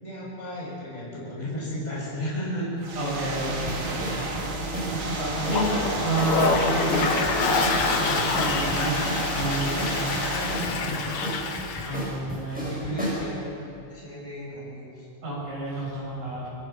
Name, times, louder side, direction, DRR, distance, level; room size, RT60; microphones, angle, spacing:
voice 1, 0.0-2.8 10.1-11.3 12.5-13.4 13.9-15.1, equal, 15° left, -6 dB, 6.8 m, -34 dB
sound 1, 2.8-10.7, right 2 dB, 45° right, 2.9 m, -31 dB
voice 2, 3.0-4.6 4.9-9.0 9.3-10.1 10.7-11.0 11.8-12.7 13.0-13.1 15.2-16.5, right 2 dB, 80° right, -5 dB, 9.7 m, -30 dB
sound 2, 3.7-13.3, equal, ahead, 7.1 m, -34 dB
Toilet flush, 5.3-12.1, left 4 dB, 70° left, 2.9 m, -27 dB
24.5 x 24.0 x 5.9 m, 2.8 s
omnidirectional pair, 3.4 m